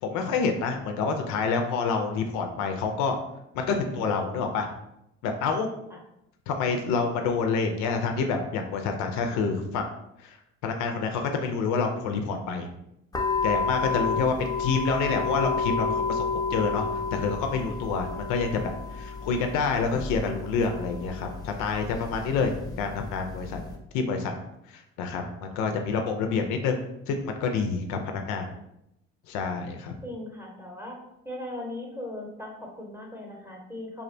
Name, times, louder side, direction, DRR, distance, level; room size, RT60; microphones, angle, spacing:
voice 1, 0.0-3.2 3.5-4.7 5.2-5.7 6.5-9.9 10.2-10.4 10.6-12.7 13.4-16.2 16.5-16.9 17.1-23.6 23.9-24.3 24.7-26.8 27.1-28.5 29.3-29.9, left 5 dB, 70° left, 5 dB, 0.4 m, -27 dB
sound 1, 13.1-23.8, left 4 dB, 15° left, 0.4 m, -31 dB
voice 2, 30.0-31.0 31.2-34.0, left 1 dB, 10° right, -1 dB, 0.8 m, -39 dB
2.5 x 2.1 x 2.5 m, 0.81 s
supercardioid pair, 75°, 30 cm